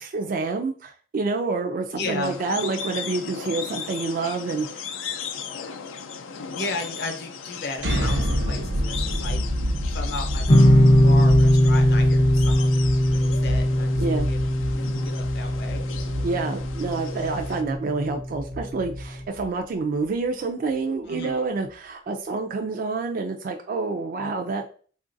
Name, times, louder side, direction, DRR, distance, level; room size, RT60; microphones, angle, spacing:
voice 1, 0.0-4.8 14.0-14.3 16.2-24.7, right 3 dB, 45° right, 4 dB, 0.3 m, -28 dB
voice 2, 1.9-2.4 6.5-9.6 9.9-15.8 21.1-21.4, left 3 dB, 60° left, 4 dB, 0.7 m, -35 dB
sound 1, 2.2-17.6, left 6 dB, 90° left, 0.4 m, -37 dB
sound 2, 7.8-19.6, equal, 75° right, 0.6 m, -28 dB
sound 3, 10.5-17.7, equal, 30° left, 0.4 m, -19 dB
3.7 x 2.4 x 2.6 m, 0.41 s
head